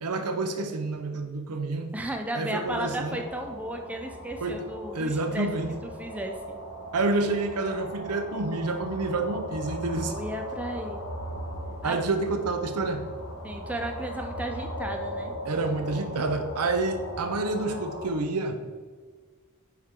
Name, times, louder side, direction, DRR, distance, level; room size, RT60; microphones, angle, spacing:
voice 1, 0.0-1.9 2.3-3.2 4.4-4.6 4.9-5.7 6.9-10.1 11.8-13.0 15.4-18.6, right 3 dB, 90° right, 6 dB, 0.8 m, -28 dB
voice 2, 1.9-5.5 5.8-6.6 10.0-11.0 11.8-12.0 13.4-15.3, right 1 dB, 5° right, 3 dB, 0.5 m, -34 dB
sound 1, 2.6-18.1, equal, 85° left, 1.6 m, -38 dB
9.4 x 4.7 x 3.7 m, 1.5 s
head